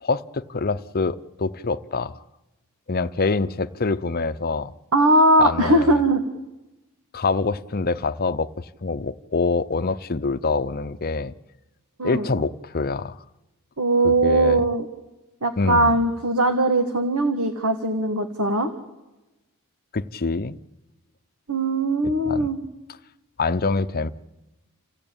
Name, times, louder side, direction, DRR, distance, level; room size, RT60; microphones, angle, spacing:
voice 1, 0.0-2.1 2.9-4.7 5.4-6.0 7.1-11.3 12.0-13.2 14.0-14.6 15.6-16.0 19.9-20.6 22.3-22.5 23.4-24.1, left 3 dB, 45° left, 0.7 m, -25 dB
voice 2, 4.9-6.3 12.0-12.3 13.8-14.9 15.4-18.7 21.5-22.6, right 2 dB, 80° right, 1.7 m, -20 dB
28.0 x 16.0 x 8.9 m
head